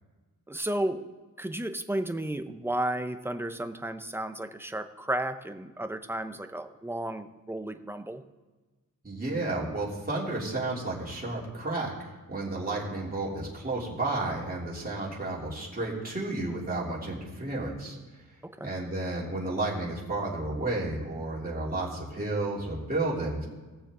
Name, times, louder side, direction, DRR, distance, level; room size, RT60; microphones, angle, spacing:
voice 1, 0.5-1.0 1.4-8.2 18.4-18.7, right 1 dB, 5° right, 9 dB, 0.6 m, -33 dB
voice 2, 9.0-18.0 18.6-23.5, right 2 dB, 25° right, -5 dB, 3.1 m, -32 dB
19.0 x 7.0 x 3.8 m, 1.2 s
wide cardioid pair, 105°, 35 cm